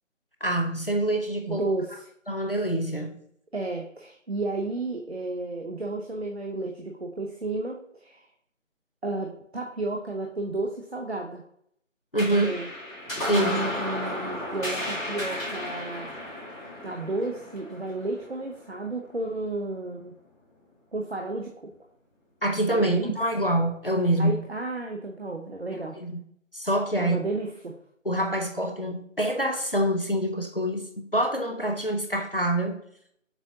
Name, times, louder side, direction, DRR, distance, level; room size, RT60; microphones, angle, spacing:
voice 1, 0.4-1.7 2.3-3.2 12.1-12.5 13.2-13.6 22.4-24.4 26.0-26.2 26.5-27.2 28.0-32.8, right 1 dB, 45° left, 4 dB, 0.5 m, -26 dB
voice 2, 1.5-2.1 3.5-8.2 9.0-11.4 12.3-12.7 13.3-16.1 16.8-20.1 20.9-21.7 22.7-23.1 24.2-26.0 27.0-27.7, right 2 dB, 55° right, 2 dB, 0.6 m, -32 dB
sound 1, 12.2-19.0, left 1 dB, 90° left, 1.8 m, -34 dB
7.1 x 2.7 x 2.7 m, 0.68 s
figure-of-eight pair, 175°, 39 cm